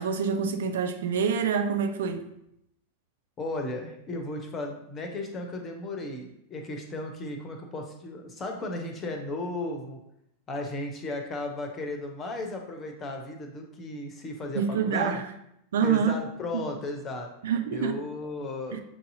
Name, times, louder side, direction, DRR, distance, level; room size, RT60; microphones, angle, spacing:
voice 1, 0.0-2.2 14.5-15.3 15.7-16.2 17.4-18.0 18.7-18.8, right 7 dB, 60° right, 0.5 m, -26 dB
voice 2, 3.4-10.0 10.5-15.2 15.8-17.3 17.7-18.8, left 2 dB, 25° left, 0.8 m, -35 dB
7.2 x 2.8 x 2.7 m
figure-of-eight pair, 90°, 0 cm